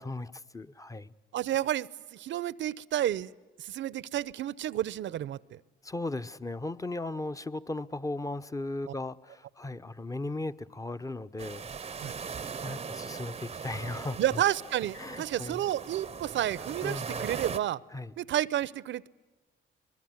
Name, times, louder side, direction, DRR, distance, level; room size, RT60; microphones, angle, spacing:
voice 1, 0.0-1.1 5.8-11.7 12.4-14.4 14.9-15.7 16.8-17.3 17.9-18.1, left 2 dB, 15° left, 12 dB, 0.9 m, -37 dB
voice 2, 1.3-3.3 3.6-5.6 12.0-12.1 14.2-17.8 18.2-19.1, right 12 dB, 70° right, 21 dB, 0.7 m, -31 dB
sound 1, 11.4-17.6, right 6 dB, 30° right, 0.7 m, -39 dB
24.0 x 21.5 x 9.5 m, 1.2 s
cardioid pair, 90°, 20 cm